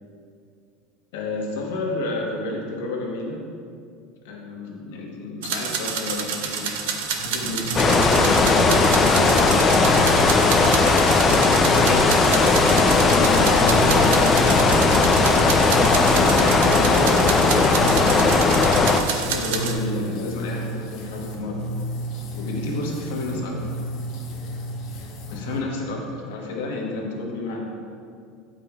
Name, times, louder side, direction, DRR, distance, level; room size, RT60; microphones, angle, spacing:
voice 1, 1.1-3.4 4.2-6.7 7.2-15.4 16.0-18.6 19.1-21.7 22.3-23.8 25.3-27.6, left 2 dB, 85° left, -1 dB, 1.1 m, -31 dB
sound 1, 5.4-19.7, right 6 dB, 85° right, 0.6 m, -28 dB
sound 2, 7.2-25.6, equal, 55° left, 0.9 m, -32 dB
sound 3, 7.7-19.0, left 4 dB, 20° left, 0.3 m, -17 dB
8.5 x 5.0 x 2.3 m, 2.3 s
supercardioid pair, 150°, 0 cm